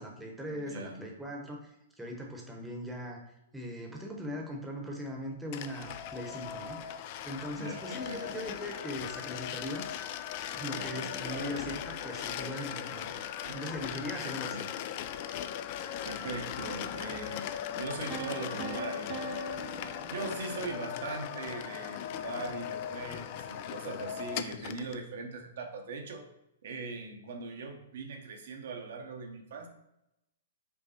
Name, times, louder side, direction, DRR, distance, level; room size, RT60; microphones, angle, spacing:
voice 1, 0.0-1.7 2.0-3.2 3.5-6.9 7.2-9.8 10.5-13.2 13.5-14.7, equal, 5° right, 0 dB, 0.9 m, -40 dB
voice 2, 0.5-1.1 7.5-8.4 10.7-11.7 13.4-13.6 14.2-14.7 16.0-19.4 20.1-26.3 26.6-29.7, right 3 dB, 65° right, 3 dB, 0.8 m, -41 dB
sound 1, 5.5-25.0, left 10 dB, 45° left, 0.3 m, -38 dB
sound 2, 18.1-21.0, right 9 dB, 40° right, 0.3 m, -43 dB
5.4 x 2.2 x 4.2 m, 0.84 s
hypercardioid pair, 115°, 0 cm